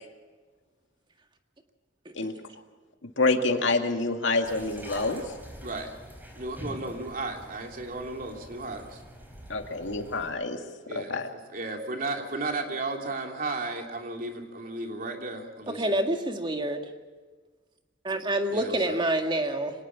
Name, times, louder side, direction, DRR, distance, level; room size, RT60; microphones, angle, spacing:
voice 1, 3.2-5.2 9.5-10.6 10.9-11.3, left 3 dB, 85° left, 4 dB, 2.2 m, -27 dB
sound 1, 4.4-10.3, equal, 10° right, 4.4 m, -45 dB
voice 2, 5.6-5.9 6.4-9.0 10.9-11.2 11.5-16.0 18.5-19.0, right 2 dB, 50° right, 2 dB, 3.1 m, -34 dB
voice 3, 15.7-16.8 18.0-19.7, right 1 dB, 25° right, 4 dB, 2.0 m, -27 dB
25.0 x 19.5 x 6.0 m, 1.4 s
head